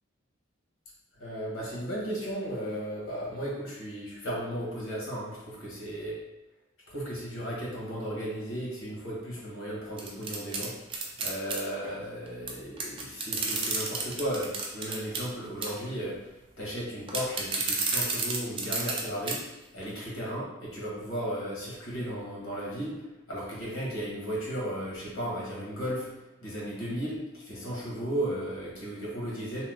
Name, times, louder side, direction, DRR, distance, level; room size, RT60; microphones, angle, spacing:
voice 1, 1.2-6.2 6.9-10.7 11.2-16.3 16.6-19.4 19.7-23.0 23.3-26.1 26.4-29.6, equal, 85° left, -5 dB, 1.2 m, -35 dB
sound 1, 10.0-11.6 12.5-12.6 12.8-15.3 15.6-15.9 17.1-19.0 19.3-19.4 19.8-19.9, right 4 dB, 25° right, 0.3 m, -31 dB
2.9 x 2.2 x 3.4 m, 0.97 s
head